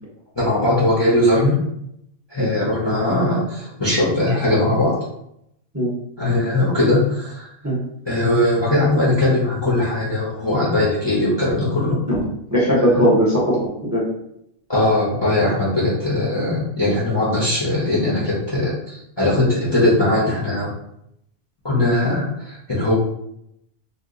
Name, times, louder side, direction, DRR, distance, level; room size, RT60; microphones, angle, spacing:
voice 1, 0.4-1.5 2.3-4.9 6.2-7.5 8.1-12.0 12.8-12.9 14.7-20.7 21.6-22.9, left 1 dB, 25° left, -7 dB, 0.7 m, -20 dB
voice 2, 12.5-14.1, equal, 15° right, -6 dB, 0.7 m, -19 dB
2.7 x 2.3 x 3.7 m, 0.78 s
omnidirectional pair, 1.3 m